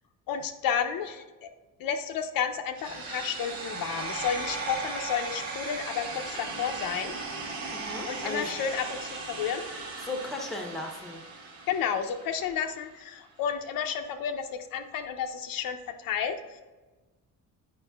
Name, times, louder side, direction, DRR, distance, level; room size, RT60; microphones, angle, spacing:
voice 1, 0.3-1.5 1.8-7.1 8.0-9.7 11.7-16.6, left 7 dB, 75° left, 6 dB, 0.6 m, -31 dB
sound 1, 2.8-12.8, right 3 dB, 80° right, 1.2 m, -37 dB
voice 2, 7.7-8.5 10.0-11.2, left 2 dB, ahead, 1 dB, 0.8 m, -36 dB
8.7 x 5.2 x 2.3 m, 1.2 s
cardioid pair, 155°, 35 cm